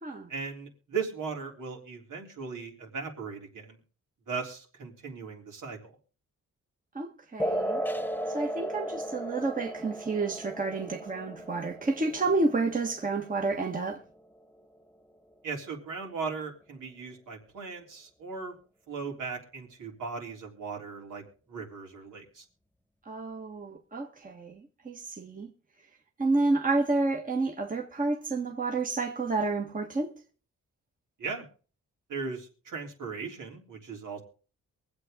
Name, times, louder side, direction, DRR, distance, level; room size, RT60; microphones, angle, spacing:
voice 1, 0.3-3.8 4.3-5.9 15.4-18.6 18.9-21.2 21.5-22.5 31.2-31.5 32.1-34.2, right 5 dB, 80° right, 3.6 m, -38 dB
voice 2, 6.9-7.8 8.3-14.0 23.0-25.5 26.2-30.1, right 3 dB, 25° right, 1.6 m, -30 dB
sound 1, 7.4-14.4, equal, 5° left, 0.7 m, -36 dB
23.5 x 8.1 x 3.7 m
wide cardioid pair, 115°, 31 cm